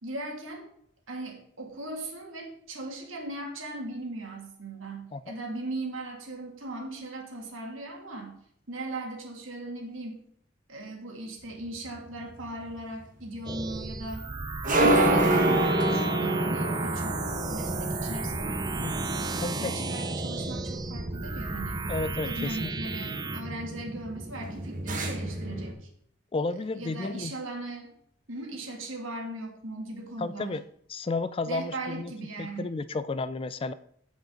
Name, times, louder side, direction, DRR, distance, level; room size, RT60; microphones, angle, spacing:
voice 1, 0.0-0.7 1.1-8.4 8.7-10.2 10.7-14.2 14.8-19.2 19.6-21.9 22.2-25.9 26.7-27.9 28.3-30.6 31.5-32.7, right 2 dB, 80° right, 1 dB, 2.4 m, -38 dB
sound 1, 11.7-25.7, right 1 dB, 40° right, 1.5 m, -29 dB
sound 2, 13.4-23.4, right 3 dB, 20° right, 0.6 m, -35 dB
voice 2, 19.4-19.8 21.9-22.7 26.3-27.3 30.2-30.6 30.9-32.1 32.4-33.7, left 3 dB, 25° left, 14 dB, 0.3 m, -32 dB
15.0 x 5.3 x 3.9 m, 0.65 s
head